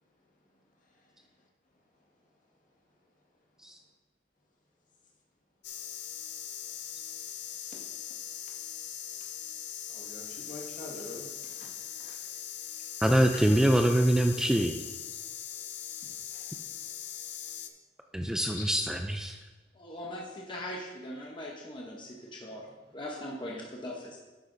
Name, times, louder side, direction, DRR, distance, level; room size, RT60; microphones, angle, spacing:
sound 1, 5.6-17.7, left 10 dB, 80° left, 0.6 m, -41 dB
voice 1, 9.9-12.3 13.3-13.4 16.3-16.5 18.6-18.7, left 2 dB, 50° left, -2 dB, 1.8 m, -45 dB
voice 2, 13.0-14.8 18.1-19.4, right 1 dB, 5° right, 4 dB, 0.3 m, -24 dB
voice 3, 19.8-22.6 22.9-24.2, left 1 dB, 30° left, -2 dB, 0.9 m, -40 dB
10.5 x 8.1 x 2.6 m, 1.3 s
head